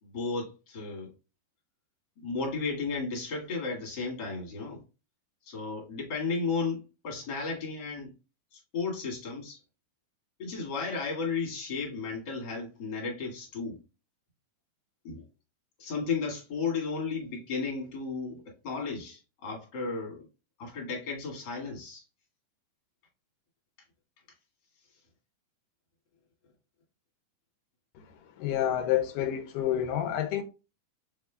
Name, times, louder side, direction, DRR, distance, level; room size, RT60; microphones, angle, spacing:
voice 1, 0.0-1.1 2.2-4.8 5.5-8.1 8.5-9.6 10.4-13.8 15.0-15.2 15.8-20.2 20.6-22.0, left 4 dB, 35° left, 2.2 m, -34 dB
voice 2, 28.4-30.4, left 11 dB, 85° left, 2.2 m, -28 dB
6.0 x 3.5 x 2.3 m
omnidirectional pair, 3.6 m